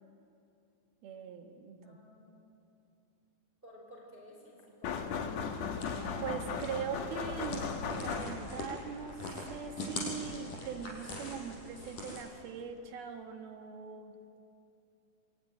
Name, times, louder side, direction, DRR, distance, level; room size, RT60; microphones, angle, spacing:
voice 1, 1.0-2.0 6.2-14.1, right 7 dB, 65° right, 4 dB, 2.9 m, -41 dB
voice 2, 1.8-2.4 3.6-5.5, left 1 dB, 10° right, -2 dB, 5.3 m, -54 dB
sound 1, 4.8-8.7, left 6 dB, 90° left, 1.5 m, -37 dB
sound 2, 5.5-12.2, left 2 dB, 45° left, 5.8 m, -43 dB
Wind instrument woodwind instrument, 5.6-10.9, left 4 dB, 5° left, 4.6 m, -59 dB
26.5 x 23.0 x 9.7 m, 2.7 s
omnidirectional pair, 5.6 m